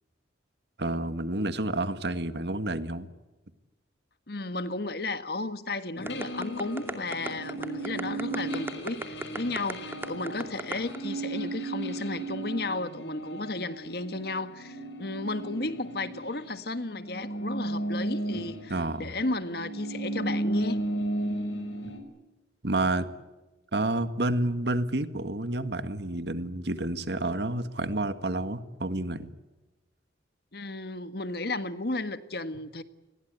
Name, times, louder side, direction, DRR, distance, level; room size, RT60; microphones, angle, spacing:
voice 1, 0.8-3.1 18.7-19.1 22.6-23.1 23.7-29.3, right 2 dB, 65° right, 1.8 m, -29 dB
voice 2, 4.3-20.8 30.5-32.8, left 2 dB, 55° left, 1.6 m, -34 dB
sound 1, 6.0-16.6 16.9-22.0, right 1 dB, 75° left, 6.1 m, -35 dB
sound 2, 6.0-11.0, right 1 dB, 10° right, 2.4 m, -35 dB
29.0 x 21.0 x 8.1 m
head